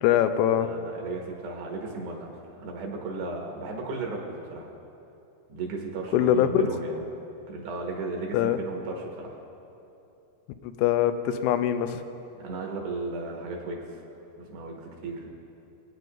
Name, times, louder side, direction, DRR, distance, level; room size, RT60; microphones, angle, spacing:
voice 1, 0.0-0.7 6.1-6.5 8.3-8.6 10.6-12.0, left 11 dB, 85° left, 9 dB, 3.1 m, -23 dB
voice 2, 0.6-4.7 5.5-7.0 7.5-9.4 12.4-13.9 14.4-15.3, right 3 dB, 70° right, 0 dB, 3.1 m, -35 dB
25.5 x 9.4 x 2.6 m, 2.7 s
omnidirectional pair, 5.5 m